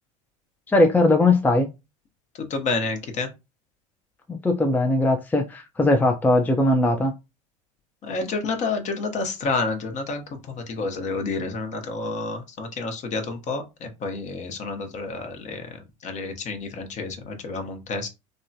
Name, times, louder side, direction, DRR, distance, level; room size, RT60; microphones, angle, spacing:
voice 1, 0.7-1.7 4.3-7.1, left 2 dB, 10° left, 0.5 m, -20 dB
voice 2, 2.4-3.3 8.0-18.1, left 3 dB, 40° left, 0.9 m, -29 dB
3.5 x 2.2 x 2.7 m
hypercardioid pair, 80°, 18 cm